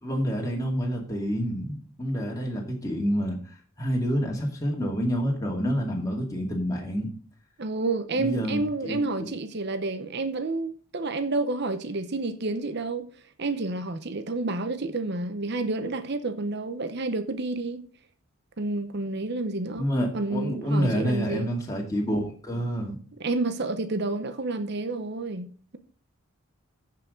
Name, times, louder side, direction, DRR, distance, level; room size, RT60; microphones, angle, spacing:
voice 1, 0.0-7.1 8.1-9.3 19.8-23.0, equal, 15° left, 2.2 m, -28 dB
voice 2, 7.6-13.1 13.4-17.9 18.6-19.9 20.1-21.5 23.2-25.8, right 2 dB, 50° right, 0.8 m, -29 dB
15.0 x 5.8 x 3.9 m
head